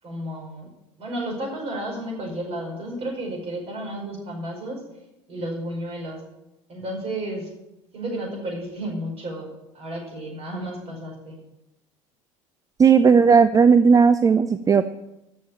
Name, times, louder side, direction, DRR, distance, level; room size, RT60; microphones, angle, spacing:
voice 1, 0.0-0.7 1.0-4.8 5.3-6.2 6.7-7.5 7.9-11.4, right 1 dB, 35° right, 0 dB, 5.2 m, -32 dB
voice 2, 12.8-14.9, right 6 dB, 20° right, 13 dB, 0.5 m, -15 dB
13.5 x 5.9 x 8.7 m, 0.91 s
figure-of-eight pair, 65°, 17 cm